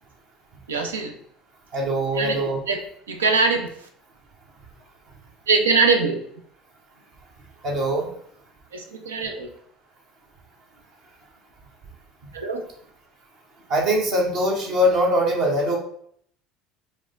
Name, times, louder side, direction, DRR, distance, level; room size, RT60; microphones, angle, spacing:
voice 1, 0.7-1.2 2.2-2.4 2.7-2.8 3.1-3.7 5.5-6.2 8.7-9.5 12.3-12.7, right 4 dB, 80° right, 5 dB, 0.6 m, -22 dB
voice 2, 1.7-2.6 7.6-8.1 13.7-15.8, equal, 55° right, 0 dB, 1.2 m, -22 dB
4.8 x 2.2 x 3.8 m, 0.64 s
figure-of-eight pair, 65°, 0 cm